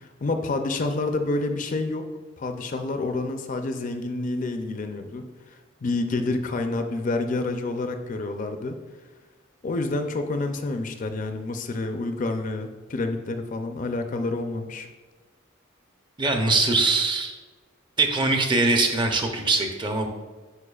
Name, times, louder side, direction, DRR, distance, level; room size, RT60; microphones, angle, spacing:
voice 1, 0.0-2.1 2.4-8.8 9.6-14.9, left 2 dB, 40° left, 6 dB, 0.4 m, -28 dB
voice 2, 16.2-17.4 18.0-20.1, right 3 dB, 25° right, 4 dB, 0.6 m, -22 dB
9.7 x 4.6 x 2.3 m, 1.3 s
head